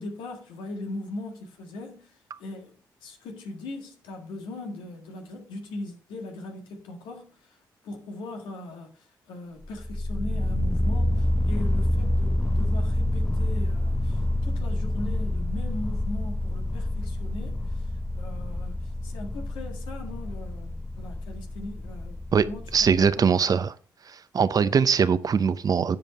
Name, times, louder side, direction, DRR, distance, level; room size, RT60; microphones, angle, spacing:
voice 1, 0.0-2.8 3.0-7.6 7.8-17.9 18.2-18.8 19.0-22.2 22.4-23.3, left 2 dB, 90° left, 1.8 m, -39 dB
sound 1, 9.6-23.1, left 1 dB, 5° left, 0.6 m, -27 dB
voice 2, 22.7-23.7 24.1-26.0, right 6 dB, 50° right, 0.7 m, -22 dB
9.5 x 5.2 x 4.1 m
supercardioid pair, 55°, 8 cm